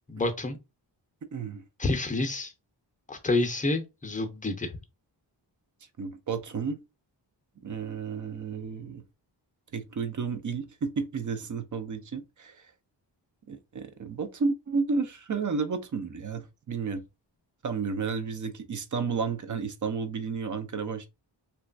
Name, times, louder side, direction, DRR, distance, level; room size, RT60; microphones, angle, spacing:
voice 1, 0.1-0.6 1.8-2.5 3.1-4.8, left 2 dB, 20° left, 0.6 m, -28 dB
voice 2, 1.3-1.6 6.0-6.8 7.6-9.0 9.7-12.6 13.5-17.0 17.6-21.1, right 5 dB, 45° right, 0.5 m, -32 dB
3.0 x 2.3 x 2.4 m
wide cardioid pair, 110°, 45 cm